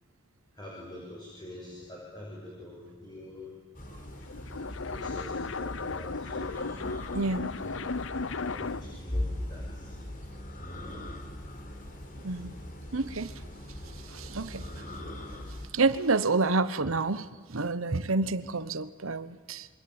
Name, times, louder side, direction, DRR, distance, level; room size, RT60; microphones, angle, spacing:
voice 1, 0.6-3.5 4.9-6.7 7.6-7.7 8.5-9.9, left 1 dB, 20° left, -3 dB, 6.4 m, -45 dB
sound 1, 3.7-15.7, left 1 dB, 45° left, 4.0 m, -40 dB
sound 2, 4.1-9.0, left 4 dB, 65° left, 0.8 m, -35 dB
voice 2, 7.1-7.5 12.2-12.5 12.9-13.3 14.0-14.7 15.7-19.7, right 3 dB, 85° right, 13 dB, 1.1 m, -29 dB
27.5 x 24.5 x 8.9 m, 1.5 s
head